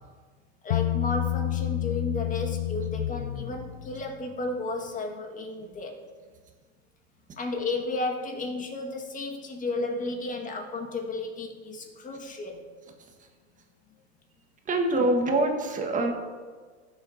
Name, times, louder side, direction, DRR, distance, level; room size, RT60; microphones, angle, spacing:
voice 1, 0.6-6.0 7.4-12.6, left 2 dB, 25° left, 2 dB, 1.8 m, -33 dB
Bass guitar, 0.7-4.1, left 13 dB, 90° left, 0.5 m, -29 dB
voice 2, 14.6-16.1, right 2 dB, 25° right, 3 dB, 1.5 m, -25 dB
15.5 x 7.2 x 2.8 m, 1.5 s
hypercardioid pair, 115°, 32 cm